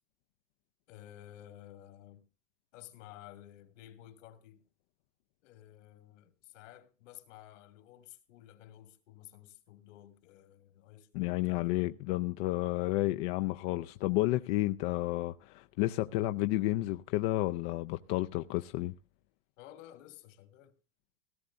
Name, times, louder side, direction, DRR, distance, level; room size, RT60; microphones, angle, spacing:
voice 1, 0.9-2.2 2.7-4.6 5.4-12.0 19.6-20.7, left 12 dB, 75° left, 2.2 m, -53 dB
voice 2, 11.1-18.9, left 17 dB, 50° left, 0.5 m, -31 dB
17.0 x 14.0 x 2.6 m
supercardioid pair, 155°, 38 cm